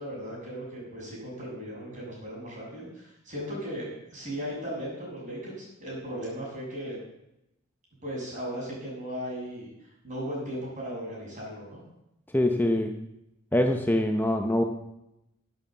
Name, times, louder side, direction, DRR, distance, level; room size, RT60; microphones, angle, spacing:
voice 1, 0.0-7.0 8.0-9.7 10.0-11.8, equal, 40° right, -4 dB, 6.6 m, -37 dB
voice 2, 12.3-12.9 13.5-14.6, left 1 dB, 10° left, 4 dB, 0.7 m, -24 dB
11.0 x 9.4 x 7.4 m, 0.88 s
head